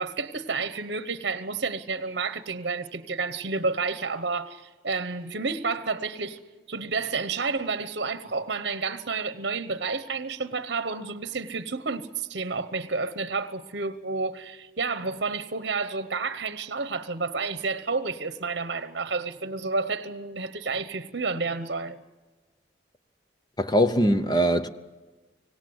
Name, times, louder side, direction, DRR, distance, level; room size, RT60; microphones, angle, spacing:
voice 1, 0.0-6.4 6.7-22.0, right 4 dB, 60° right, 0.9 m, -30 dB
voice 2, 23.6-24.7, equal, 20° left, 0.8 m, -21 dB
25.5 x 18.0 x 8.0 m
head